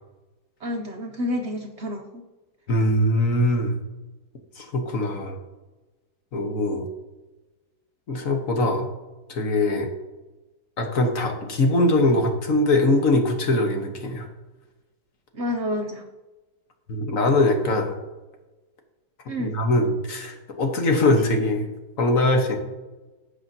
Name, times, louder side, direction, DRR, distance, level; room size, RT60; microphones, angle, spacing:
voice 1, 0.6-2.2 15.3-16.1 19.3-19.6, left 1 dB, 55° right, 3 dB, 0.8 m, -29 dB
voice 2, 2.7-3.7 4.6-5.4 6.3-6.9 8.1-8.9 9.3-9.9 10.8-14.3 16.9-17.9 19.4-21.7 22.0-22.6, left 2 dB, 55° left, 3 dB, 1.5 m, -22 dB
16.0 x 5.7 x 2.7 m, 1.1 s
omnidirectional pair, 1.8 m